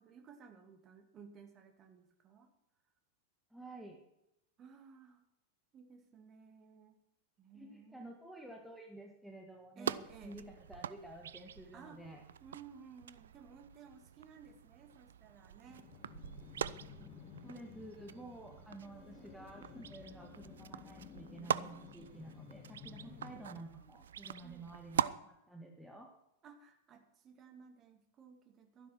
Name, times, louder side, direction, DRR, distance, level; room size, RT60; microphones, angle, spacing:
voice 1, 0.0-2.5 4.6-5.2 5.7-7.0 7.4-8.2 9.8-10.5 11.7-12.0 12.4-15.9 19.1-19.3 23.0-23.3 24.4-24.7 26.4-28.9, right 6 dB, 30° right, 5 dB, 2.3 m, -57 dB
voice 2, 3.5-4.0 7.5-12.2 17.4-26.1, right 1 dB, ahead, 1 dB, 1.8 m, -51 dB
sound 1, 9.8-25.1, right 9 dB, 65° right, 0.5 m, -43 dB
sound 2, 15.7-23.6, left 7 dB, 30° left, 2.1 m, -54 dB
13.0 x 11.5 x 6.0 m, 0.84 s
figure-of-eight pair, 90°, 0 cm